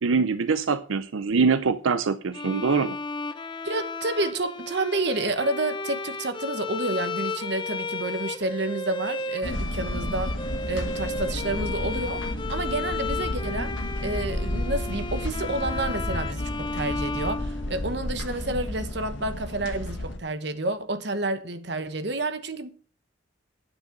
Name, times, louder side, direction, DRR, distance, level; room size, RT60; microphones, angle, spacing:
voice 1, 0.0-3.0, right 5 dB, 90° right, 0.6 m, -23 dB
Bowed string instrument, 2.3-18.2, left 3 dB, 25° left, 0.7 m, -34 dB
voice 2, 3.6-10.4 10.7-12.2 12.5-13.7 14.0-22.7, right 2 dB, 60° right, 1.2 m, -29 dB
sound 1, 9.4-20.2, left 1 dB, 75° left, 1.5 m, -32 dB
9.5 x 6.7 x 6.5 m
head